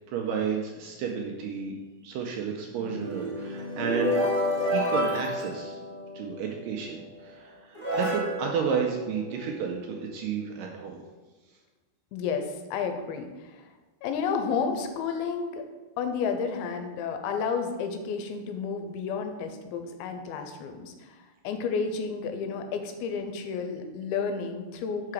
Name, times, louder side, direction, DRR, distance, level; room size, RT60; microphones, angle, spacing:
voice 1, 0.1-1.7 2.0-4.3 4.7-5.8 6.1-11.0, right 6 dB, 85° right, 1 dB, 2.0 m, -31 dB
sound 1, 2.7-6.4 7.2-7.3 7.7-9.7, left 1 dB, 25° left, 0.9 m, -30 dB
voice 2, 12.1-13.6 14.0-15.6 16.0-21.2 21.4-25.1, left 5 dB, 85° left, 6 dB, 2.5 m, -31 dB
5.7 x 4.9 x 4.8 m, 1.2 s
omnidirectional pair, 4.4 m